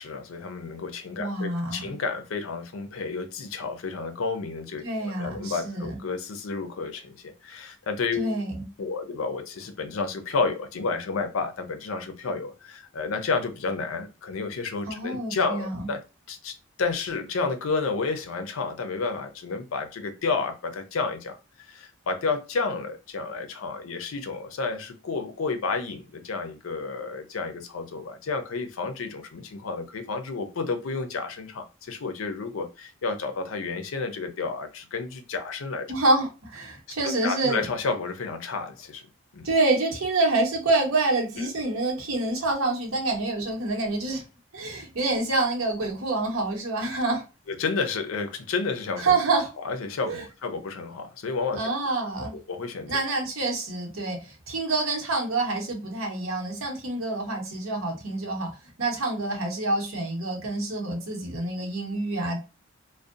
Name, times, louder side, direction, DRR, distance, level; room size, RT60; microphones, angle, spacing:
voice 1, 0.0-8.4 8.8-16.0 16.3-35.9 37.0-39.0 39.3-39.5 41.4-41.5 47.5-49.1 49.6-51.6 52.3-53.0, left 4 dB, 85° left, 0.5 m, -31 dB
voice 2, 1.2-1.9 4.8-6.0 8.1-8.6 14.9-15.9 35.9-37.6 39.4-44.2 44.5-47.2 49.0-49.5 50.1-50.2 51.5-52.3 52.9-58.5 58.8-62.4, right 2 dB, 85° right, 0.9 m, -27 dB
2.6 x 2.1 x 2.4 m
head